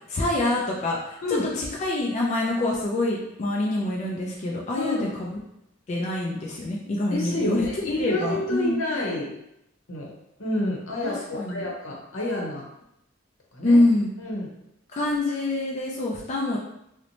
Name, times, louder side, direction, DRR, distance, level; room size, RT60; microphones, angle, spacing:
voice 1, 0.1-5.4 5.9-8.8 11.0-11.7 13.6-14.1 14.9-16.6, left 2 dB, 35° left, -3 dB, 0.3 m, -25 dB
voice 2, 4.8-5.2 7.1-9.3 9.9-10.1 10.4-12.7 13.5-13.8 14.2-14.5, left 1 dB, 85° left, -2 dB, 0.8 m, -29 dB
2.7 x 2.1 x 2.9 m, 0.80 s
head